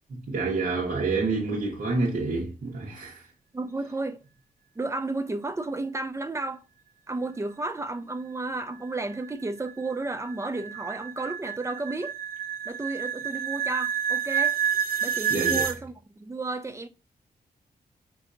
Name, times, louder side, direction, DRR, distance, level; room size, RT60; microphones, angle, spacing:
voice 1, 0.1-3.2 15.3-15.7, right 3 dB, 55° right, 1.1 m, -28 dB
voice 2, 3.5-4.2 4.8-6.6 7.1-12.2 12.6-14.6 15.0-16.9, right 2 dB, 20° right, 0.4 m, -32 dB
sound 1, 8.6-15.8, right 7 dB, 75° right, 0.7 m, -29 dB
5.3 x 2.7 x 2.5 m
wide cardioid pair, 130°, 16 cm